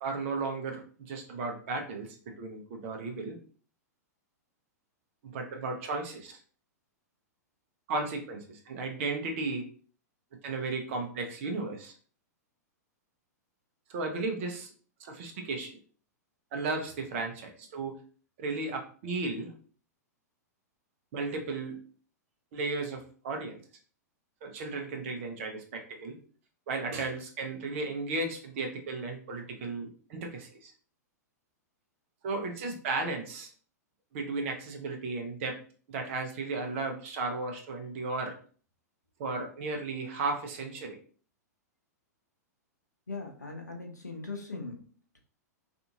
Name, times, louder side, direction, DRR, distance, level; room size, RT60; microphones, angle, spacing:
voice 1, 0.0-3.4 5.2-6.4 7.9-9.7 10.4-11.9 13.9-14.7 15.0-15.7 16.5-18.0 18.4-19.5 21.1-21.8 22.5-23.6 24.4-26.2 26.7-30.7 32.2-33.5 34.1-35.6 35.9-38.3 39.2-41.0, right 3 dB, 50° right, 3 dB, 0.8 m, -35 dB
voice 2, 43.1-45.2, left 3 dB, 90° left, 1 dB, 0.6 m, -40 dB
2.6 x 2.5 x 2.7 m, 0.42 s
figure-of-eight pair, 105°, 9 cm